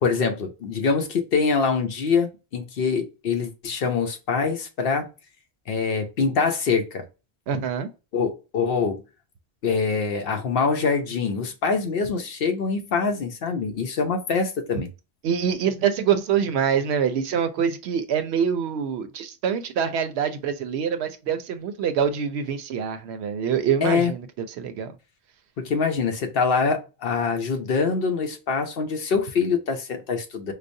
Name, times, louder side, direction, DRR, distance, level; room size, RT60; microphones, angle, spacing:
voice 1, 0.0-5.1 5.7-7.0 8.1-9.0 9.6-14.9 23.8-24.1 25.6-30.5, left 5 dB, 65° left, 0.9 m, -24 dB
voice 2, 7.5-7.9 15.2-25.0, right 7 dB, 80° right, 0.8 m, -25 dB
4.9 x 2.0 x 2.6 m
omnidirectional pair, 1.1 m